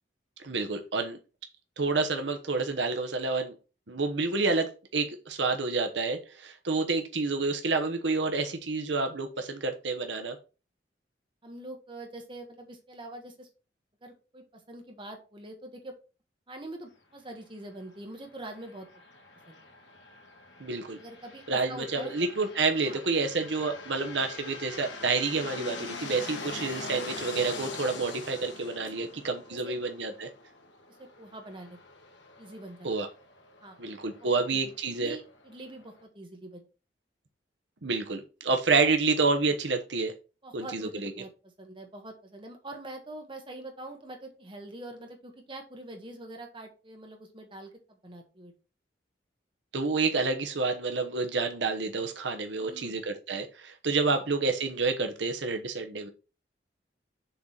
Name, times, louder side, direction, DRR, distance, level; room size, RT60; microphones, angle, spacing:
voice 1, 0.4-1.2 1.8-3.5 3.9-10.4 20.6-21.0 21.5-30.3 32.8-33.1 33.8-35.2 37.8-40.1 40.5-41.1 49.7-56.1, right 3 dB, 80° right, 6 dB, 1.0 m, -29 dB
voice 2, 11.4-13.5 14.0-16.0 16.5-18.9 19.5-19.6 21.0-22.1 22.8-23.0 28.8-29.1 29.5-29.8 30.9-31.8 32.4-32.9 33.6-33.8 34.2-36.7 40.4-48.5 52.6-53.0 54.1-54.2, right 1 dB, 30° right, 3 dB, 1.6 m, -44 dB
sound 1, 18.4-36.0, left 3 dB, 90° left, 1.8 m, -44 dB
6.9 x 4.0 x 5.9 m, 0.33 s
head